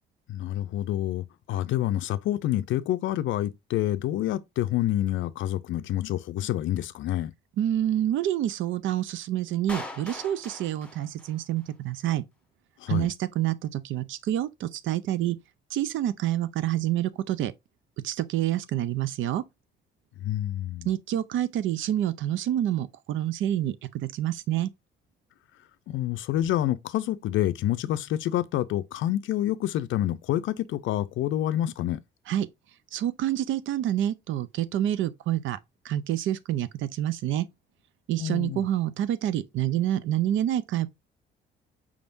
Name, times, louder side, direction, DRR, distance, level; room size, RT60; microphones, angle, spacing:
voice 1, 0.3-7.3 12.8-13.1 20.2-20.9 25.9-32.0 38.2-38.7, left 13 dB, 75° left, 0.4 m, -28 dB
voice 2, 7.6-12.2 12.9-15.4 15.7-17.5 18.0-19.4 20.9-23.8 24.0-24.7 32.3-32.5 32.9-35.6 35.8-37.5 38.1-40.9, right 12 dB, 75° right, 0.5 m, -27 dB
Clapping, 9.7-11.7, left 1 dB, 5° left, 1.0 m, -41 dB
4.9 x 3.5 x 2.5 m
cardioid pair, 90°, 20 cm